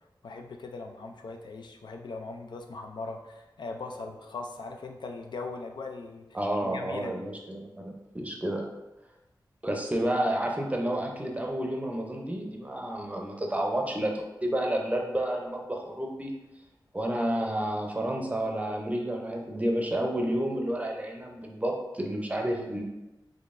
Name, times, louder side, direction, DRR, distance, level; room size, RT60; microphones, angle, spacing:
voice 1, 0.2-6.3 6.6-7.3, left 3 dB, 75° left, 3 dB, 0.4 m, -40 dB
voice 2, 6.3-8.7 9.6-16.4 16.9-22.8, right 1 dB, 20° right, 1 dB, 0.6 m, -30 dB
3.8 x 3.1 x 2.5 m, 1.0 s
wide cardioid pair, 90°, 8 cm